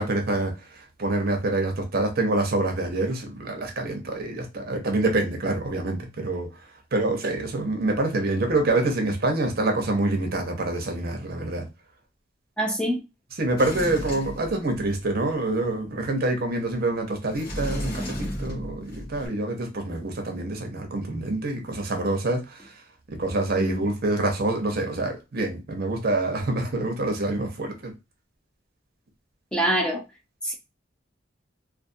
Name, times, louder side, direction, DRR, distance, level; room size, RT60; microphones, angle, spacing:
voice 1, 0.0-6.5 6.9-11.7 13.4-22.8 23.1-27.9, right 2 dB, 55° right, 0.7 m, -26 dB
voice 2, 12.6-13.0 23.5-23.8 29.5-30.0 30.4-30.5, right 1 dB, 5° left, 0.4 m, -25 dB
Sliding door, 13.6-15.1 17.3-19.3, equal, 55° left, 1.0 m, -33 dB
2.5 x 2.4 x 2.5 m
head